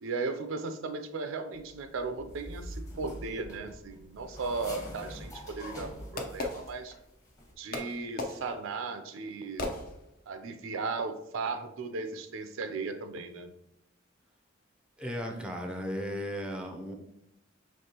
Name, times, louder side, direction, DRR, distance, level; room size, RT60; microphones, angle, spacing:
voice 1, 0.0-6.9 7.6-9.7 10.3-13.5, right 4 dB, 80° right, 8 dB, 0.4 m, -36 dB
sound 1, 1.5-6.9 7.2-7.5, equal, 15° left, 1.0 m, -45 dB
Fireworks, 5.0-7.3 7.7-10.4, left 2 dB, 50° left, 0.6 m, -39 dB
voice 2, 15.0-16.9, equal, 5° right, 2 dB, 0.5 m, -35 dB
5.3 x 3.1 x 2.8 m, 0.83 s
head